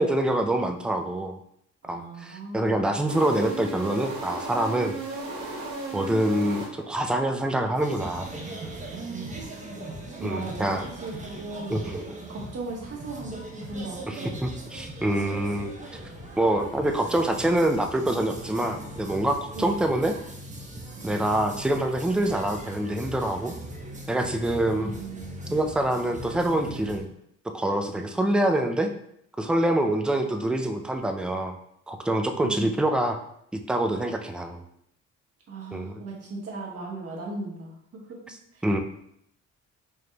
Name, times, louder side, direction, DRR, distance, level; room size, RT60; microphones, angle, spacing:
voice 1, 0.0-1.4 1.9-4.9 5.9-8.3 10.2-10.9 11.7-12.0 14.1-15.7 16.4-20.2 21.0-23.5 24.1-24.9 25.5-27.1 27.5-28.9 29.4-31.6 31.9-33.2 33.5-34.6 35.7-36.0 38.6-38.8, right 1 dB, 5° right, 4 dB, 0.3 m, -25 dB
voice 2, 1.8-3.0 9.6-9.9 10.2-11.8 12.3-14.3 17.0-17.1 19.5-19.8 24.8-25.6 32.4-32.8 35.5-38.2 38.5-38.8, right 2 dB, 55° right, -2 dB, 1.3 m, -37 dB
sound 1, 3.1-7.1, right 2 dB, 80° right, 1.1 m, -35 dB
sound 2, 7.7-27.0, right 1 dB, 25° right, 0.8 m, -39 dB
4.8 x 3.0 x 2.2 m, 0.73 s
cardioid pair, 90°, 30 cm